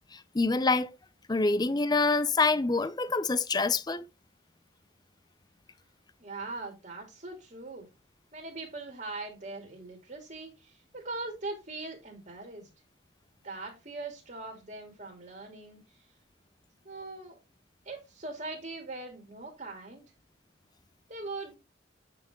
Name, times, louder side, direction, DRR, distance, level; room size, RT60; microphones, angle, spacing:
voice 1, 0.3-0.9 1.3-4.0, left 3 dB, 20° left, 0.5 m, -26 dB
voice 2, 6.2-7.9 8.3-12.7 13.4-15.8 16.8-17.4 17.8-20.1 21.1-21.6, right 3 dB, 40° right, 2.8 m, -41 dB
9.4 x 5.9 x 3.6 m
head